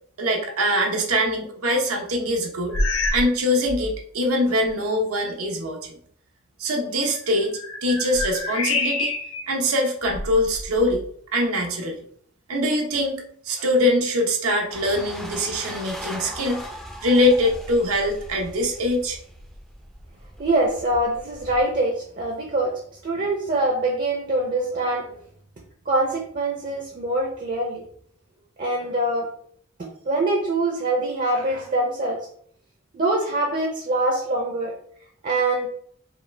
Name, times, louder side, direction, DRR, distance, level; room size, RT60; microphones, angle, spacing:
voice 1, 0.2-2.7 3.1-5.9 6.6-7.5 7.8-9.1 9.5-11.0 11.3-12.0 12.5-16.6 17.0-19.2, left 1 dB, 85° right, 1 dB, 0.9 m, -23 dB
sound 1, 2.7-3.4 3.6-4.0 4.7-4.8 7.1-9.5 10.0-11.0, left 2 dB, 75° left, 0.8 m, -27 dB
sound 2, 14.7-21.6, equal, ahead, 0.5 m, -39 dB
voice 2, 20.4-25.1 25.9-27.8 28.6-29.3 30.0-32.2 32.9-34.7 35.2-35.7, right 2 dB, 40° right, 1 dB, 0.6 m, -24 dB
4.9 x 2.3 x 3.2 m, 0.63 s
head